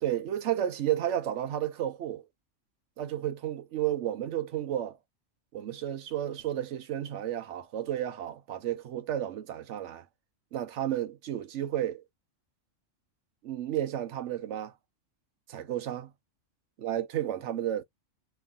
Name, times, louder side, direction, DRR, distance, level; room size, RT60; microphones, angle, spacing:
voice 1, 0.0-2.3 3.0-5.0 5.5-10.0 10.5-12.0 13.4-14.7 15.5-16.1 16.8-17.8, right 11 dB, 70° right, 1.0 m, -32 dB
3.2 x 2.7 x 3.6 m
omnidirectional pair, 1.3 m